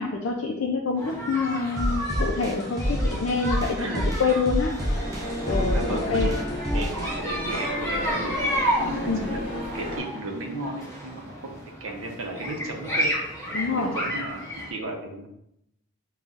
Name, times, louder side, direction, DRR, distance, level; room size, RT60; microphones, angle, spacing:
voice 1, 0.0-3.9 4.2-4.7 5.5-6.3 9.1-9.3 13.5-13.9, left 4 dB, 70° left, 0 dB, 0.4 m, -26 dB
sound 1, 1.0-14.7, equal, 15° left, 0.9 m, -32 dB
sound 2, 1.8-7.1, equal, 15° right, 0.5 m, -27 dB
voice 2, 3.8-4.1 5.7-6.5 6.7-9.4 9.7-13.1 13.7-15.3, right 1 dB, 80° right, 2 dB, 0.7 m, -35 dB
sound 3, 4.8-10.0, left 1 dB, 45° left, 1.2 m, -32 dB
5.3 x 2.3 x 2.4 m, 0.79 s
head